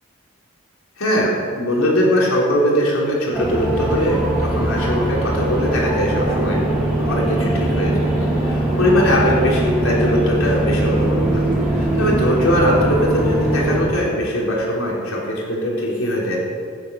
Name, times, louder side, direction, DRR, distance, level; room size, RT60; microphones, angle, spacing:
voice 1, 1.0-6.6 6.9-16.4, equal, 80° left, -3 dB, 3.8 m, -21 dB
sound 1, 3.3-13.8, right 1 dB, 5° right, 3.2 m, -21 dB
15.5 x 10.0 x 6.4 m, 2.2 s
head